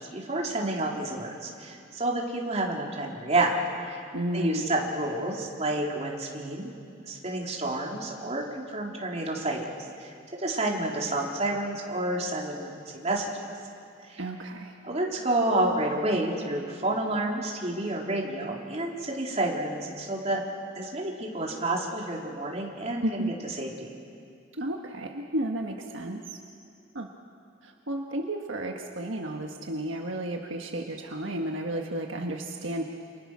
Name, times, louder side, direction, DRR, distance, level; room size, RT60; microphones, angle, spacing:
voice 1, 0.1-3.6 3.9-4.0 4.3-6.7 7.1-9.7 10.0-10.1 10.4-13.5 14.1-14.2 14.8-20.4 20.8-23.2 23.6-23.9, right 2 dB, 35° right, -1 dB, 3.7 m, -29 dB
voice 2, 4.1-4.7 14.2-14.7 23.0-23.3 24.6-26.2 26.9-27.1 27.6-32.8, right 1 dB, 75° right, 2 dB, 1.5 m, -32 dB
29.0 x 28.0 x 6.3 m, 2.4 s
head